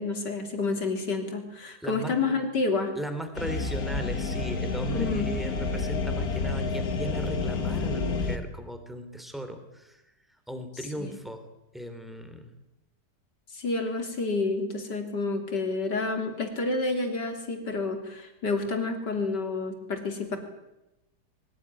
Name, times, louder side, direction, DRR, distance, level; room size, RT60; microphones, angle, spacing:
voice 1, 0.0-2.9 4.9-5.3 11.0-11.2 13.5-20.4, left 3 dB, 80° left, 5 dB, 3.9 m, -29 dB
voice 2, 1.8-2.2 2.9-10.0 10.5-11.4 11.7-12.5, right 1 dB, ahead, 7 dB, 3.1 m, -37 dB
sound 1, 3.3-8.4, left 4 dB, 60° left, 2.2 m, -29 dB
22.5 x 16.0 x 9.9 m, 0.96 s
omnidirectional pair, 1.8 m